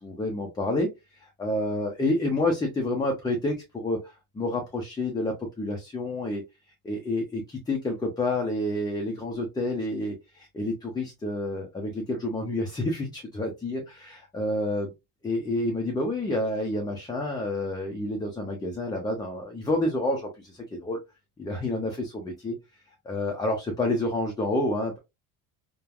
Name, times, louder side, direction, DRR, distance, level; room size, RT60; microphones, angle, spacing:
voice 1, 0.0-0.9 1.2-4.0 4.3-6.4 6.8-14.9 15.2-21.0 21.4-22.6 23.1-25.0, left 1 dB, 10° left, 1 dB, 0.4 m, -29 dB
3.1 x 2.2 x 2.3 m, 0.22 s
cardioid pair, 120°, 40 cm